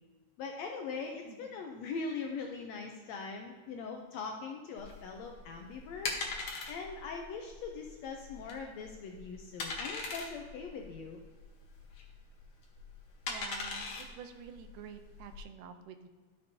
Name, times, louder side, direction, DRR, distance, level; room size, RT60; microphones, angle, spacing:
voice 1, 0.4-6.2 6.7-11.2, left 4 dB, 75° left, 2 dB, 1.6 m, -41 dB
sound 1, 4.8-15.4, left 3 dB, 60° left, 1.5 m, -41 dB
voice 2, 13.3-16.1, right 7 dB, 85° right, 8 dB, 2.3 m, -49 dB
12.5 x 6.6 x 2.7 m, 1.4 s
omnidirectional pair, 3.7 m